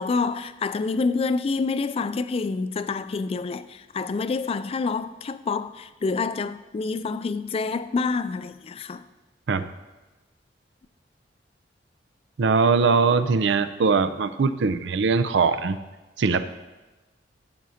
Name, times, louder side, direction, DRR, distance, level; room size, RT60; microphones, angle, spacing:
voice 1, 0.0-9.0, left 4 dB, 35° left, 0.3 m, -27 dB
voice 2, 12.4-15.8 16.2-16.5, right 4 dB, 75° right, 0.5 m, -21 dB
14.0 x 7.5 x 2.8 m
head